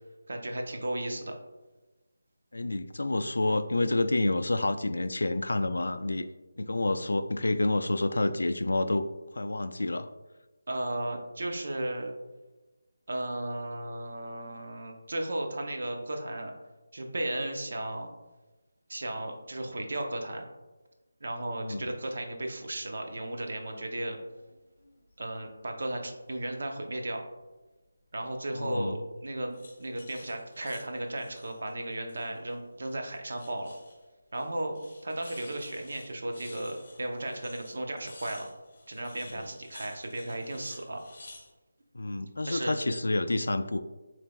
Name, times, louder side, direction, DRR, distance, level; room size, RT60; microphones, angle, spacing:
voice 1, 0.3-1.3 10.7-12.1 13.1-16.5 16.9-18.1 18.9-20.4 21.2-24.2 25.2-27.2 28.1-33.7 34.3-34.8 35.0-38.5 38.9-41.0 42.4-42.7, right 1 dB, 50° right, 3 dB, 0.7 m, -35 dB
voice 2, 2.5-6.3 6.6-9.0 9.3-10.1 21.6-21.9 28.6-29.0 41.9-43.8, left 2 dB, 85° left, 10 dB, 0.3 m, -28 dB
sound 1, 21.9-22.1 23.6-23.8 24.2-25.1 25.6-26.5 28.2-28.7 29.5-32.6 32.9-34.0 34.3-34.5 34.7-41.5, left 2 dB, 25° left, 1.5 m, -53 dB
6.9 x 3.2 x 2.3 m, 1.1 s
figure-of-eight pair, 175°, 0 cm